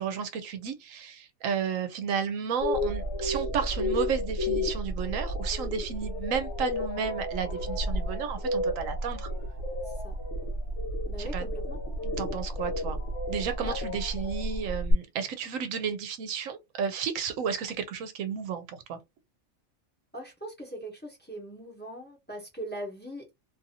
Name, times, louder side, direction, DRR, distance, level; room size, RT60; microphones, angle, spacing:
voice 1, 0.0-9.3 11.2-11.4 12.0-13.0 13.3-18.6 18.9-19.0, right 7 dB, 75° right, 1.0 m, -32 dB
sound 1, 2.6-14.9, left 1 dB, 60° left, 1.1 m, -32 dB
voice 2, 11.1-11.8 13.6-13.8 20.1-23.3, right 1 dB, 10° left, 1.0 m, -40 dB
2.6 x 2.6 x 2.7 m
omnidirectional pair, 1.4 m